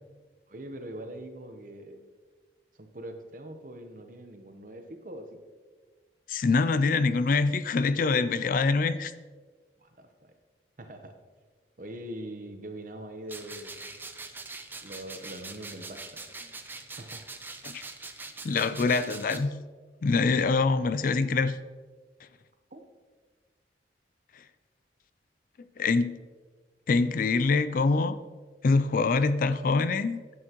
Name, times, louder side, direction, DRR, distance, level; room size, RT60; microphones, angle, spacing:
voice 1, 0.5-2.0 2.7-5.4 9.8-10.3 10.8-11.1 11.8-13.8 14.8-16.2 17.0-17.2 22.7-22.8, right 1 dB, 50° right, 6 dB, 1.0 m, -42 dB
voice 2, 6.3-9.1 17.6-17.8 18.4-19.5 20.0-21.6 25.8-26.2 26.9-28.2 28.6-30.2, left 4 dB, 50° left, 13 dB, 0.4 m, -24 dB
sound 1, 13.3-19.4, right 3 dB, 10° right, 0.5 m, -43 dB
11.0 x 8.8 x 3.0 m, 1.4 s
head